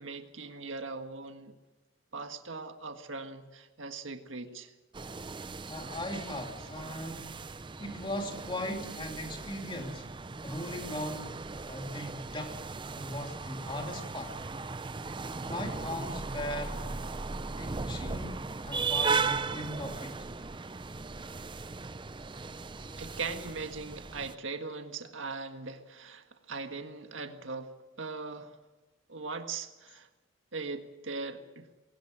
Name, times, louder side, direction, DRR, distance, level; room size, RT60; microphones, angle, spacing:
voice 1, 0.0-1.5 2.1-4.7 23.0-28.6 29.1-30.1 30.5-31.7, right 4 dB, 75° right, 6 dB, 1.7 m, -40 dB
sound 1, 4.9-24.3, right 4 dB, 25° right, 0.6 m, -37 dB
voice 2, 5.7-7.4 7.8-10.1 10.4-12.6 12.9-14.3 15.5-16.8 17.6-20.2 23.1-23.2, left 1 dB, 25° left, 3 dB, 2.9 m, -39 dB
21.0 x 18.0 x 7.6 m, 1.2 s
head